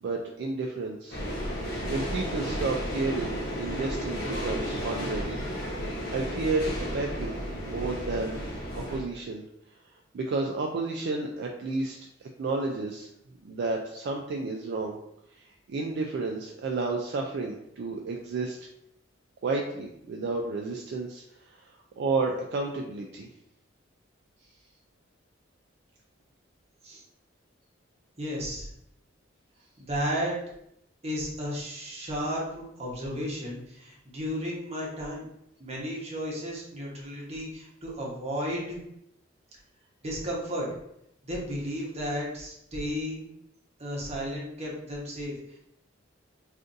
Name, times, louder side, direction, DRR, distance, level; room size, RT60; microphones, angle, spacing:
voice 1, 0.0-1.2 1.9-5.4 6.1-7.4 7.7-8.4 8.7-9.4 10.1-13.1 13.4-15.0 15.4-18.6 19.4-21.2 22.0-23.3, right 3 dB, 60° right, 0 dB, 0.3 m, -31 dB
sound 1, 1.1-9.0, equal, 55° left, 0.9 m, -33 dB
voice 2, 28.2-28.7 29.8-30.4 31.0-35.2 35.6-38.8 40.0-40.7 41.2-43.3 43.8-45.6, equal, 35° right, -4 dB, 0.9 m, -33 dB
2.5 x 2.5 x 3.8 m, 0.78 s
head